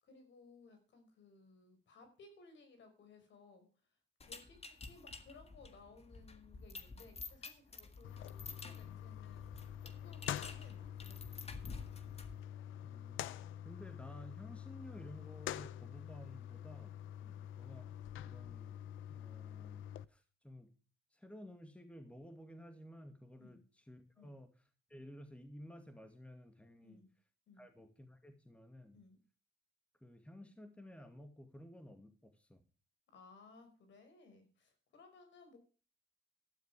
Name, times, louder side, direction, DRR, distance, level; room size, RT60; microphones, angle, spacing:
voice 1, 0.0-3.7 4.2-4.6 4.9-11.4 17.2-17.4 23.4-23.6 24.2-24.4 26.8-27.1 27.5-27.7 28.9-29.2 33.1-35.6, left 4 dB, 70° left, 7 dB, 5.5 m, -61 dB
sound 1, 4.2-12.5, left 4 dB, 30° left, 1.8 m, -51 dB
sound 2, 8.0-20.0, left 11 dB, 85° left, 0.7 m, -46 dB
voice 2, 12.8-13.2 13.6-17.0 17.6-17.9 18.3-18.8 19.1-20.7 21.1-24.5 24.9-27.0 27.6-29.0 30.0-32.6, equal, 5° left, 7 dB, 2.2 m, -54 dB
13.5 x 10.0 x 4.9 m, 0.36 s
cardioid pair, 90°, 20 cm